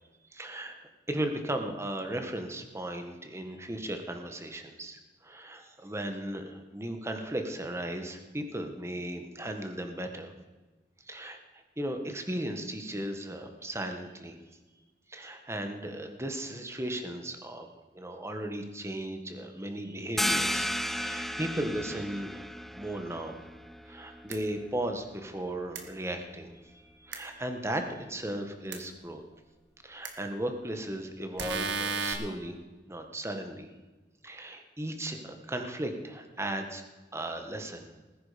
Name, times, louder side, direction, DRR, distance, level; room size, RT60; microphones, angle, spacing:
voice 1, 0.3-10.3 11.0-14.4 15.1-17.7 17.9-22.5 22.7-23.4 23.9-29.2 29.8-32.6 32.9-33.7 34.2-36.8 37.1-37.9, right 1 dB, 15° right, 5 dB, 1.6 m, -36 dB
sound 1, 20.2-25.5, equal, ahead, 0.4 m, -34 dB
sound 2, 24.3-24.4 25.8-25.9 27.1-27.2 28.7-28.8 30.0-30.1 31.4-32.1, right 4 dB, 85° right, 1.8 m, -32 dB
19.0 x 10.5 x 5.2 m, 1.2 s
head